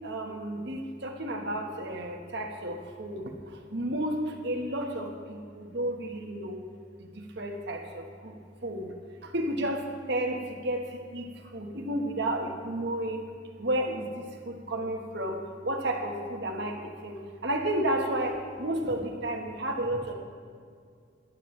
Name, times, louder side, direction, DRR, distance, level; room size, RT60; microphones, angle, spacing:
voice 1, 0.0-3.2 3.7-5.1 5.6-6.6 7.4-8.3 8.6-8.9 9.3-9.8 10.1-10.8 11.1-11.2 11.5-13.2 13.6-14.1 14.5-15.4 15.6-16.7 17.0-17.1 17.4-20.1, right 1 dB, 60° right, 2 dB, 1.4 m, -31 dB
18.0 x 11.5 x 3.3 m, 2.1 s
head